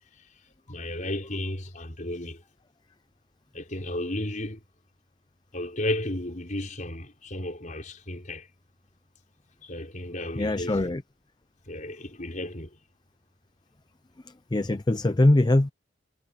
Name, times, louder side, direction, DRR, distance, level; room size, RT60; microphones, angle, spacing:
voice 1, 0.7-2.4 3.5-4.6 5.5-8.5 9.6-10.9 11.7-12.8, left 1 dB, 40° left, 5.2 m, -33 dB
voice 2, 10.4-11.0 14.5-15.7, left 1 dB, 20° left, 0.5 m, -22 dB
head